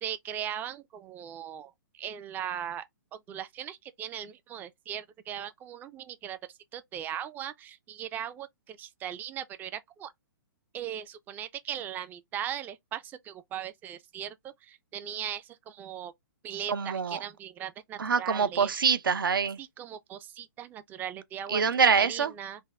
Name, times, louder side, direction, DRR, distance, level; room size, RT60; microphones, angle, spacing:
voice 1, 0.0-2.8 3.3-6.4 6.7-10.1 10.7-14.4 14.6-16.1 16.4-18.7 19.6-21.6 22.0-22.6, right 10 dB, 15° right, 0.4 m, -38 dB
voice 2, 16.7-17.2 18.0-19.6 21.5-22.3, right 6 dB, 75° right, 0.5 m, -25 dB
3.5 x 2.2 x 3.2 m
figure-of-eight pair, 125°, 11 cm